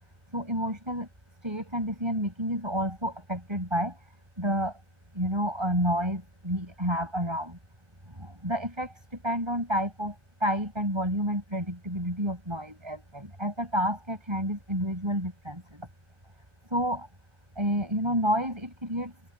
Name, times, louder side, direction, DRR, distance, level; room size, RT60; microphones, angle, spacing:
voice 1, 0.3-1.1 1.4-4.0 4.4-4.8 5.1-7.6 8.2-8.9 9.2-10.1 10.4-15.9 16.7-17.1 17.6-19.1, equal, 25° right, 5.6 m, -29 dB
omnidirectional pair, 1.1 m